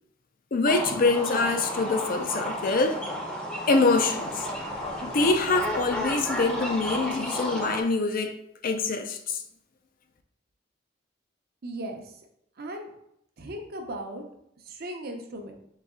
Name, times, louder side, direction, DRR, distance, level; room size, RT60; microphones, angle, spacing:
voice 1, 0.5-3.0 3.7-4.5 5.0-8.4 8.6-9.4, left 3 dB, 50° left, 0.4 m, -25 dB
sound 1, 0.6-7.8, equal, 5° left, 0.6 m, -32 dB
sound 2, 4.0-7.7, left 1 dB, 80° left, 1.4 m, -47 dB
voice 2, 11.6-12.1 12.6-12.9 13.4-14.2 14.7-15.5, right 1 dB, 55° right, 0.7 m, -37 dB
4.0 x 3.1 x 3.6 m
head